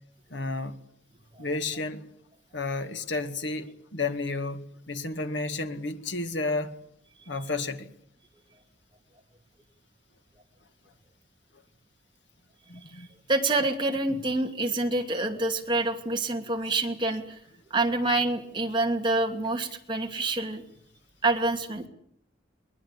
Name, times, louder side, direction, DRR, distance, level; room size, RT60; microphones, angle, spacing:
voice 1, 0.3-0.8 1.4-2.0 2.5-6.8 7.3-7.9 12.7-13.1 14.1-14.2, left 3 dB, 75° left, 2.0 m, -32 dB
voice 2, 13.3-17.4 17.7-20.6 21.2-21.9, right 2 dB, 25° right, 2.6 m, -27 dB
23.0 x 20.0 x 8.4 m
head